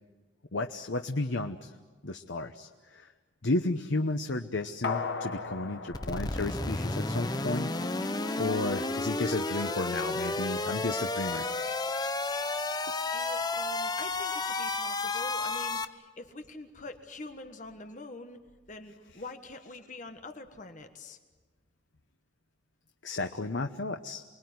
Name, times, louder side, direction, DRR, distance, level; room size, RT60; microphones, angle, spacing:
voice 1, 0.5-1.7 2.0-3.1 3.4-7.7 8.4-11.5 11.9-12.0 23.0-24.2, left 2 dB, 85° left, 5 dB, 1.1 m, -33 dB
sound 1, 4.8-7.4 7.8-7.9, left 4 dB, 65° left, 1.8 m, -37 dB
sound 2, 5.9-15.9, left 2 dB, 20° left, 0.8 m, -32 dB
voice 2, 13.1-18.4 18.7-21.2, left 2 dB, 40° left, 6 dB, 1.5 m, -45 dB
28.5 x 21.5 x 9.6 m, 1.3 s
head